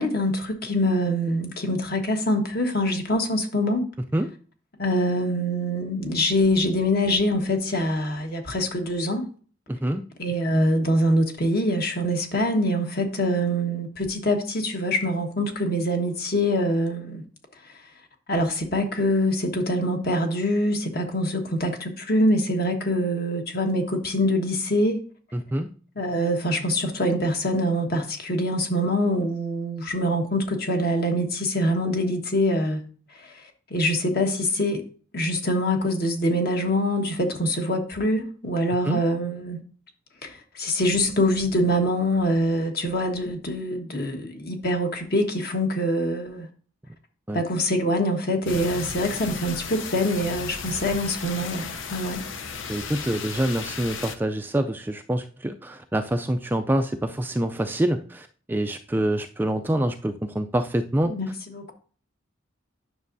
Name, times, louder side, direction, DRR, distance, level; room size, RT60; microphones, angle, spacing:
voice 1, 0.0-3.8 4.8-9.3 10.2-17.2 18.3-25.0 25.9-32.8 33.1-33.4 33.7-34.8 35.1-39.6 40.2-46.5 47.3-52.2 61.0-61.7, equal, 50° left, 3 dB, 1.3 m, -24 dB
voice 2, 9.7-10.0 25.3-25.7 38.9-39.0 47.3-47.4 52.7-61.1, right 1 dB, 10° right, 6 dB, 0.3 m, -26 dB
sound 1, 48.5-54.2, left 5 dB, 70° left, 0.7 m, -35 dB
9.5 x 6.2 x 2.6 m, 0.41 s
head